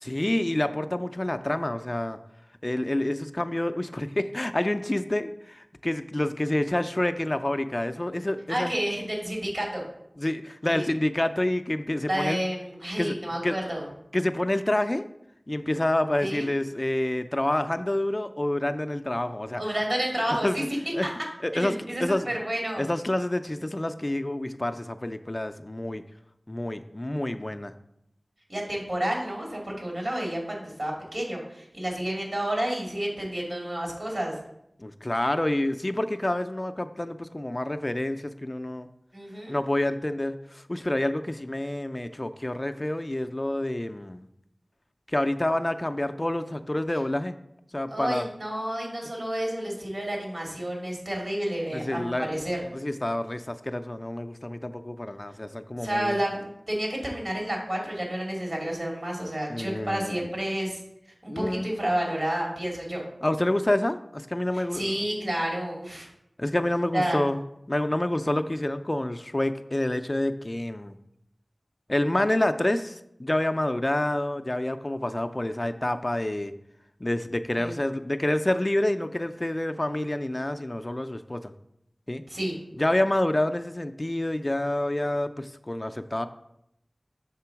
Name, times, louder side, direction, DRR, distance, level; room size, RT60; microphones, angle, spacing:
voice 1, 0.0-2.2 2.6-8.7 10.2-12.4 13.0-13.2 13.4-13.6 14.1-15.1 15.5-19.6 20.3-20.6 20.9-21.1 21.4-22.3 22.8-26.0 26.5-27.7 34.8-38.9 39.5-44.2 45.1-47.3 47.7-48.3 51.7-52.4 52.7-56.2 59.5-60.3 61.3-61.7 63.2-64.9 66.4-67.4 67.7-71.0 71.9-76.5 77.0-81.5 82.1-82.2 82.8-86.3, left 1 dB, 35° left, 9 dB, 0.4 m, -28 dB
voice 2, 8.5-9.8 10.7-10.9 12.1-13.9 16.2-16.5 19.6-21.1 21.5-22.8 28.5-34.4 39.1-39.5 47.9-52.6 55.8-60.8 61.2-63.0 64.5-66.1 66.9-67.2 77.6-77.7 82.3-82.6, right 1 dB, 65° right, -1 dB, 2.5 m, -30 dB
6.8 x 3.7 x 5.7 m, 0.78 s
wide cardioid pair, 40°, 0 cm